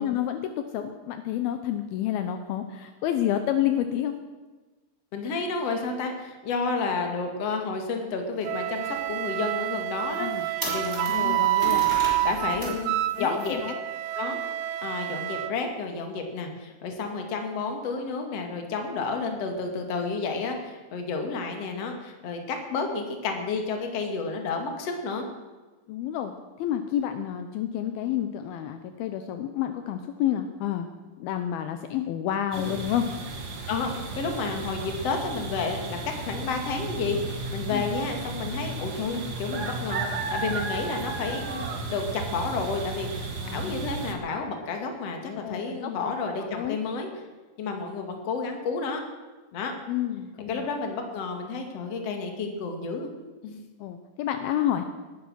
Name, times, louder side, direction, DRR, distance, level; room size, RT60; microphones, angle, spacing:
voice 1, 0.0-4.1 10.2-10.5 11.1-11.4 12.6-12.8 13.2-13.7 25.9-26.3 26.6-30.9 31.2-33.1 37.7-37.8 43.4-43.9 45.2-46.1 46.4-46.8 49.9-50.7 53.8-54.8, left 11 dB, 80° left, 8 dB, 2.6 m, -29 dB
voice 2, 5.1-13.6 14.2-14.4 14.8-25.3 32.6-32.8 33.7-47.1 47.6-49.0 49.5-49.7 50.5-53.1 53.4-53.6, left 4 dB, 45° left, 4 dB, 2.6 m, -31 dB
Wind instrument woodwind instrument, 8.4-15.5, right 15 dB, 90° right, 1.9 m, -28 dB
sound 1, 8.5-8.6 9.1-9.2 9.7-9.8 10.1-12.8 13.1-13.5, equal, 5° right, 5.3 m, -36 dB
sound 2, 32.5-44.1, right 3 dB, 65° right, 0.9 m, -34 dB
19.5 x 11.5 x 6.3 m, 1.2 s
omnidirectional pair, 4.5 m